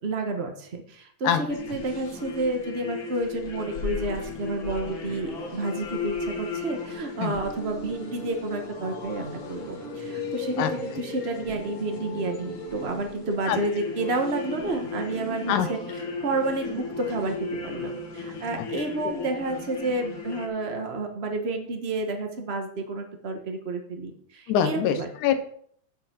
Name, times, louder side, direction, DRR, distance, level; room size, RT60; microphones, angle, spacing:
voice 1, 0.0-25.1, right 2 dB, 70° right, 4 dB, 0.5 m, -30 dB
sound 1, 1.5-20.5, left 3 dB, 45° left, 2.3 m, -35 dB
voice 2, 24.5-25.4, left 9 dB, 90° left, 8 dB, 2.4 m, -24 dB
10.0 x 5.6 x 5.9 m, 0.62 s
omnidirectional pair, 3.4 m